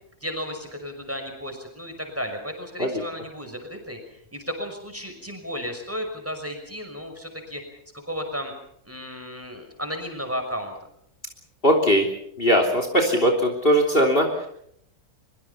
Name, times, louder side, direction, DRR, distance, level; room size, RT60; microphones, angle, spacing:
voice 1, 0.2-4.0 4.3-7.6 8.0-8.5 8.8-10.7, equal, 10° right, 4 dB, 5.9 m, -33 dB
voice 2, 11.6-12.1 12.4-14.5, equal, 35° left, 4 dB, 3.4 m, -20 dB
24.5 x 24.0 x 5.7 m, 0.69 s
omnidirectional pair, 1.6 m